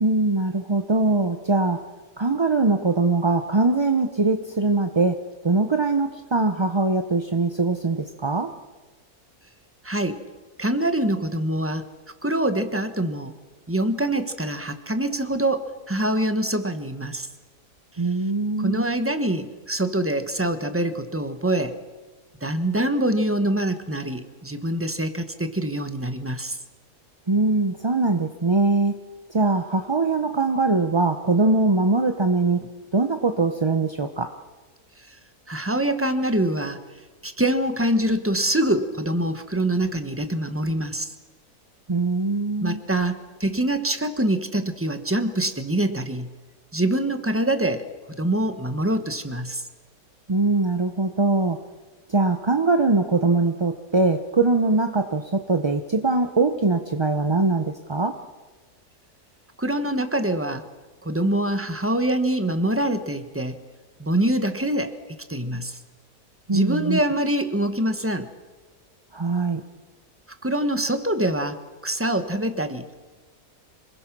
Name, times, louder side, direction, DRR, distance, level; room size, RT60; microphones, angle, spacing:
voice 1, 0.0-1.8 2.2-5.1 5.4-8.5 18.0-18.9 27.3-29.0 29.3-32.6 32.9-34.3 41.9-42.8 50.3-51.6 52.1-58.1 66.5-67.0 69.1-69.6, right 3 dB, 25° right, 6 dB, 0.6 m, -22 dB
voice 2, 9.8-10.2 10.6-11.9 12.2-13.3 13.7-17.3 18.6-21.7 22.4-26.6 35.1-35.2 35.5-36.8 37.2-41.1 42.6-46.3 46.7-47.9 48.2-49.6 59.6-60.7 61.0-63.6 64.0-64.9 65.3-65.8 66.5-68.3 70.4-72.9, right 1 dB, 10° right, 9 dB, 1.1 m, -25 dB
26.5 x 20.5 x 6.1 m, 1.3 s
omnidirectional pair, 1.6 m